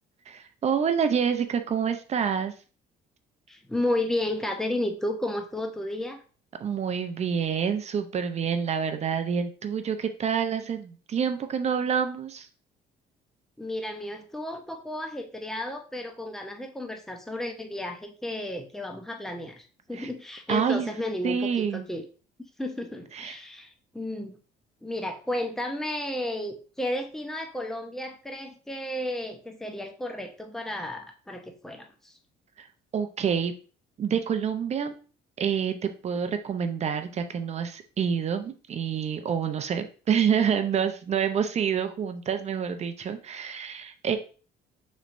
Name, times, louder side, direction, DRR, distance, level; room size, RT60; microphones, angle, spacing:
voice 1, 0.3-2.5 6.6-12.5 19.9-20.1 20.5-20.9 21.2-21.8 23.1-23.4 32.6-32.7 32.9-33.5 34.0-34.9 35.4-44.2, right 7 dB, 40° right, 8 dB, 0.6 m, -27 dB
voice 2, 3.5-6.2 13.6-22.0 22.6-24.4 24.8-32.2, left 1 dB, 5° left, 4 dB, 0.7 m, -33 dB
6.2 x 3.2 x 2.6 m, 0.37 s
cardioid pair, 110°, 17 cm